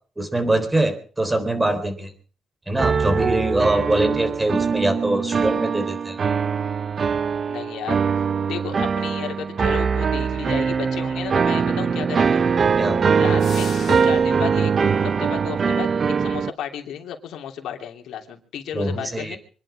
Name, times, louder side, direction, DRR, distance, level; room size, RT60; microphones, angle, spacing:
voice 1, 0.2-2.1 2.7-6.2 12.8-13.1 18.7-19.4, right 2 dB, 15° right, 9 dB, 3.8 m, -23 dB
sound 1, 2.8-16.5, right 6 dB, 45° right, 0.7 m, -22 dB
voice 2, 7.5-8.0 8.5-12.4 13.2-14.7 15.0-15.9 16.2-19.4, left 9 dB, 85° left, 3 dB, 3.0 m, -33 dB
sound 2, 13.4-14.4, left 8 dB, 60° left, 2.3 m, -38 dB
25.5 x 11.0 x 4.9 m, 0.42 s
cardioid pair, 95°, 0 cm